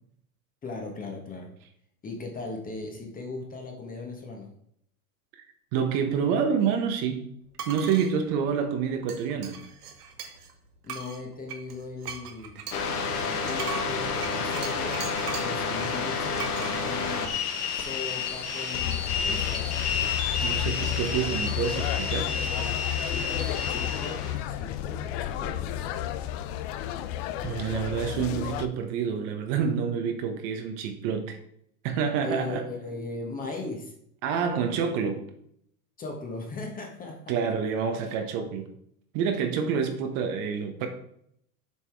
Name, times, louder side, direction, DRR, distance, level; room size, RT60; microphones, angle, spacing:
voice 1, 0.6-1.5 2.0-4.5 10.8-12.6 13.2-15.0 15.4-17.3 17.7-19.7 22.2-25.8 32.2-33.9 36.0-37.3, left 3 dB, 20° left, 2 dB, 1.4 m, -38 dB
voice 2, 5.7-7.3 7.7-9.6 20.4-22.3 27.4-31.4 31.8-32.6 34.2-35.2 37.3-38.7 39.1-40.9, right 7 dB, 45° right, 5 dB, 1.2 m, -28 dB
sound 1, 7.5-8.1 9.1-10.5 10.9-15.6 16.4-16.7, right 7 dB, 85° right, 1.4 m, -39 dB
sound 2, 12.7-24.4, left 5 dB, 90° left, 1.5 m, -30 dB
sound 3, 18.8-28.7, left 12 dB, 45° left, 0.6 m, -32 dB
7.2 x 4.4 x 4.6 m, 0.70 s
hypercardioid pair, 120°, 45 cm